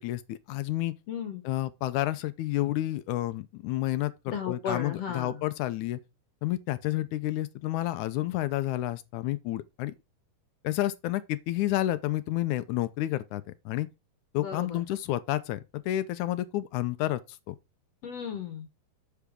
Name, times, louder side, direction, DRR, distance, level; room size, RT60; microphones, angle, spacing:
voice 1, 0.0-0.9 1.5-6.0 6.4-9.9 10.6-13.9 14.3-17.2 17.5-17.6, left 15 dB, 75° left, 1.9 m, -30 dB
voice 2, 1.1-1.4 4.3-5.4 14.4-14.8 18.0-18.7, left 7 dB, 60° left, 2.0 m, -35 dB
8.4 x 7.0 x 3.6 m
omnidirectional pair, 4.0 m